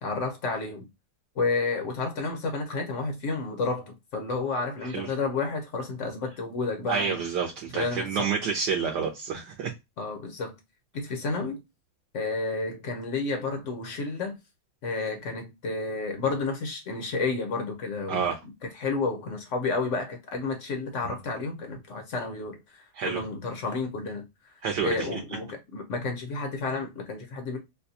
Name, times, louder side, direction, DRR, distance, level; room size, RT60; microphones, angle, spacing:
voice 1, 0.0-0.9 1.4-7.2 7.7-8.3 10.0-10.6 10.9-11.6 12.1-14.3 14.8-18.2 18.7-24.3 24.5-27.6, left 3 dB, 55° left, 0.8 m, -31 dB
voice 2, 6.9-9.7 18.1-18.4 22.9-23.2 24.6-25.2, right 6 dB, 70° right, 1.1 m, -29 dB
4.0 x 2.3 x 2.6 m
omnidirectional pair, 2.3 m